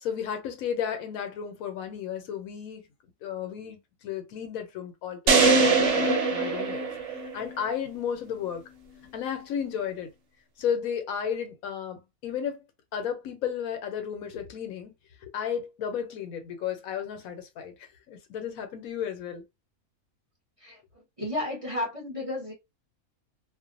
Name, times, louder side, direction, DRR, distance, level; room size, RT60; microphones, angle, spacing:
voice 1, 0.0-2.8 3.2-6.9 7.3-8.6 9.1-10.1 10.6-12.6 12.9-14.9 15.2-17.7 18.1-19.4, left 8 dB, 75° left, 1.0 m, -33 dB
sound 1, 5.3-7.6, right 4 dB, 60° right, 1.0 m, -22 dB
voice 2, 21.2-22.5, left 1 dB, 30° right, 0.8 m, -32 dB
2.5 x 2.1 x 2.5 m
omnidirectional pair, 1.5 m